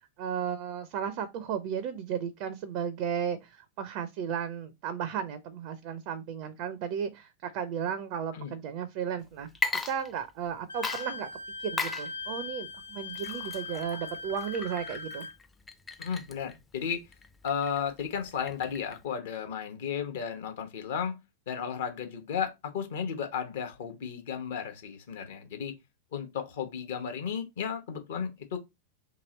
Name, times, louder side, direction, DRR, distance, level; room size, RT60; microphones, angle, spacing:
voice 1, 0.2-11.3 11.6-15.3, right 8 dB, 45° right, 0.4 m, -34 dB
Water / Liquid, 9.5-10.5 10.8-19.1, left 4 dB, 15° left, 0.4 m, -38 dB
Wind instrument woodwind instrument, 10.7-15.4, left 4 dB, 75° left, 0.5 m, -40 dB
voice 2, 16.0-17.0 17.4-21.2 21.5-25.7 26.1-28.6, left 7 dB, 55° left, 0.8 m, -34 dB
3.0 x 2.8 x 3.8 m
figure-of-eight pair, 90°, 0 cm